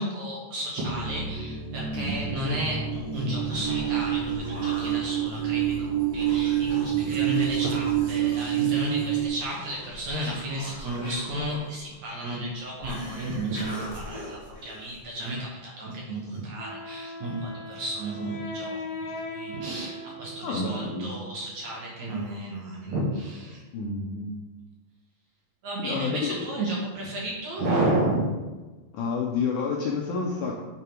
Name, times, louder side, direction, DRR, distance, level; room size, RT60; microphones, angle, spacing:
voice 1, 0.0-23.6 25.6-28.4, right 1 dB, 65° right, -3 dB, 2.1 m, -32 dB
sound 1, 0.8-9.3, right 10 dB, 85° right, 1.6 m, -27 dB
voice 2, 1.9-2.3 6.9-7.2 20.4-21.2 23.7-24.3 25.8-26.4 28.9-30.6, left 4 dB, 80° left, -1 dB, 1.8 m, -30 dB
Human voice, 3.2-15.4, equal, 15° right, 1.6 m, -42 dB
Wind instrument woodwind instrument, 16.6-21.4, equal, 65° left, 3.2 m, -39 dB
8.6 x 3.5 x 4.4 m, 1.2 s
omnidirectional pair, 4.2 m